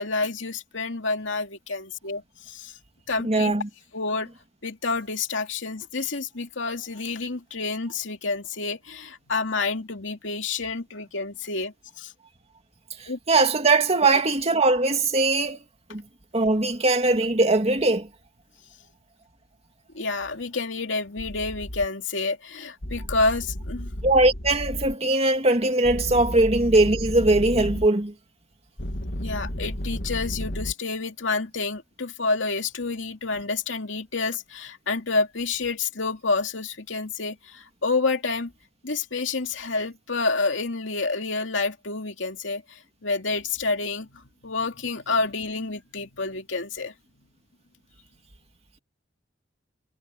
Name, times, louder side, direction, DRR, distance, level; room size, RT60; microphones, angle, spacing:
voice 1, 0.0-2.7 3.1-3.5 3.9-4.3 4.6-12.1 13.1-13.2 14.1-14.2 19.9-23.9 29.2-38.5 38.8-46.9, left 3 dB, 80° left, 2.6 m, -29 dB
voice 2, 3.2-3.7 13.0-15.6 15.9-16.0 16.3-18.1 24.0-28.1, right 2 dB, 35° right, 2.3 m, -21 dB
sound 1, 21.2-21.9 22.8-24.9 25.8-27.9 28.8-30.7, equal, 60° left, 2.2 m, -33 dB
head